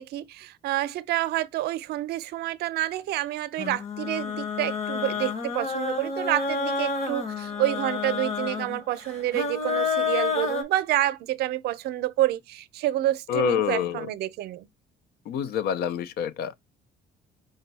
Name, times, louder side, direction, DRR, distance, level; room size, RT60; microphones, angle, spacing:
voice 1, 0.0-14.7, right 14 dB, 75° right, 0.6 m, -28 dB
sound 1, 3.6-10.6, left 5 dB, 40° left, 1.3 m, -29 dB
voice 2, 13.3-14.1 15.3-16.6, left 9 dB, 70° left, 0.5 m, -27 dB
5.0 x 2.3 x 4.0 m
cardioid pair, 110°, 17 cm